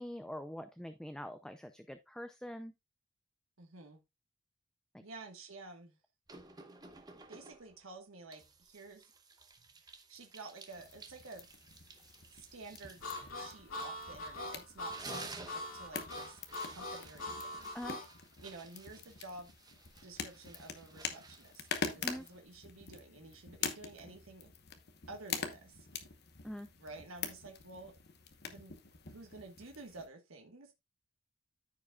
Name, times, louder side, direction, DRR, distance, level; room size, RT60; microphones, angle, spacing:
voice 1, 0.0-2.7 17.7-18.0 22.0-22.3 26.4-26.7, equal, 5° left, 0.4 m, -44 dB
voice 2, 3.6-4.0 5.0-6.0 7.3-9.1 9.8-11.5 12.3-13.1 13.3-16.4 16.7-17.7 18.4-19.5 20.0-24.5 25.1-25.9 26.8-28.0 28.4-28.7 29.1-30.7, right 3 dB, 80° right, 1.4 m, -51 dB
sound 1, 6.3-7.8 8.3-14.4 14.7-22.5, right 3 dB, 20° right, 0.9 m, -54 dB
sound 2, 10.7-30.1, left 6 dB, 50° left, 1.0 m, -45 dB
Harmonica, 13.0-18.1, left 2 dB, 80° left, 2.4 m, -42 dB
14.0 x 4.9 x 2.3 m
head